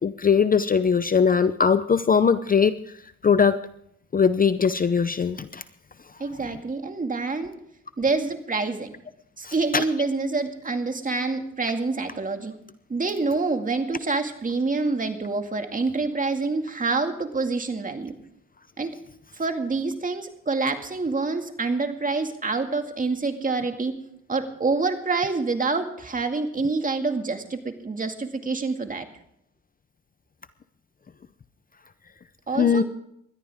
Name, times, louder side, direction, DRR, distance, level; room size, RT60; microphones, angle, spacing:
voice 1, 0.0-2.8 3.2-3.6 4.1-5.6 9.4-9.8 32.6-32.8, left 6 dB, 30° left, 13 dB, 0.7 m, -20 dB
voice 2, 6.2-7.6 8.0-8.9 9.4-12.5 12.9-18.1 18.8-18.9 19.3-24.0 24.3-29.1 32.5-32.8, right 3 dB, 25° right, 6 dB, 2.2 m, -27 dB
20.5 x 13.0 x 3.6 m, 0.72 s
cardioid pair, 90°, 30 cm